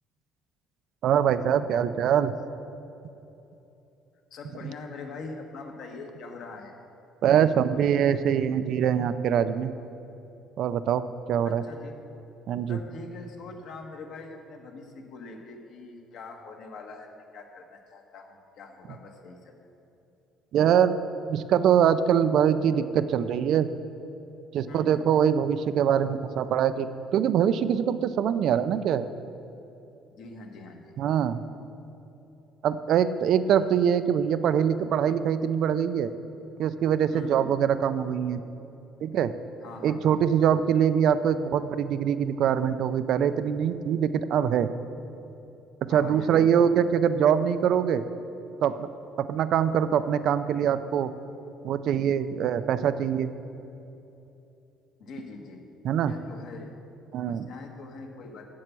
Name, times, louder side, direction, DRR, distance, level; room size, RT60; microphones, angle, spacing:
voice 1, 1.0-2.4 7.2-9.7 10.6-11.6 12.5-12.8 20.5-21.0 21.3-23.7 24.5-29.1 31.0-31.4 32.6-36.1 36.6-38.4 39.0-39.3 39.8-44.7 45.8-48.0 48.6-48.9 49.2-51.1 51.6-53.3 55.8-56.1 57.1-57.5, right 8 dB, 50° right, 12 dB, 0.3 m, -23 dB
voice 2, 4.3-6.7 11.4-12.0 12.7-19.5 24.7-25.0 30.1-31.0 37.1-37.5 39.6-40.0 45.9-46.5 55.0-55.7 56.0-56.7 57.2-58.4, left 3 dB, 55° left, 3 dB, 1.2 m, -43 dB
7.5 x 7.2 x 8.1 m, 2.9 s
cardioid pair, 170°, 0 cm